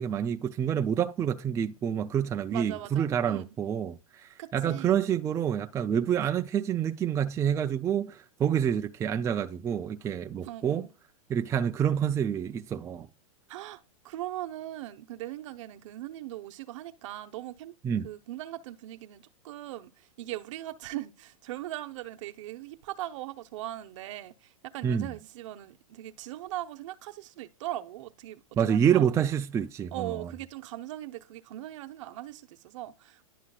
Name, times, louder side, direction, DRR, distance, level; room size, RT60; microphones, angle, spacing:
voice 1, 0.0-10.9 11.3-13.1 17.8-18.1 24.8-25.1 28.6-30.2, right 8 dB, 15° right, 0.4 m, -28 dB
voice 2, 2.5-3.5 4.4-5.0 10.4-10.9 13.5-17.7 18.0-29.1 29.9-33.2, right 14 dB, 60° right, 0.9 m, -40 dB
11.0 x 5.7 x 2.4 m
hypercardioid pair, 125°, 18 cm